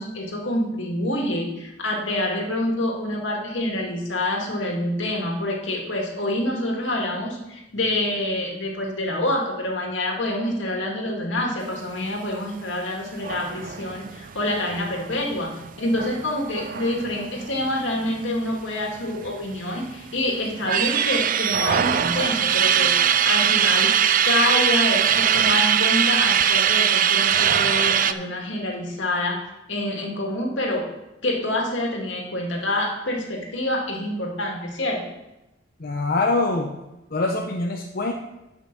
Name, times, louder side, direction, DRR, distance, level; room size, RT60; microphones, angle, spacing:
voice 1, 0.0-15.5 15.8-23.9 24.2-29.4 29.7-30.9 31.2-35.0, left 1 dB, 75° left, 0 dB, 2.1 m, -27 dB
sound 1, 13.2-18.3 18.6-18.7 18.9-19.9 20.3-28.1, right 8 dB, 45° right, 0.4 m, -21 dB
voice 2, 35.8-36.7 37.1-38.1, left 2 dB, 50° left, 1 dB, 0.7 m, -24 dB
9.4 x 5.7 x 6.0 m, 0.96 s
head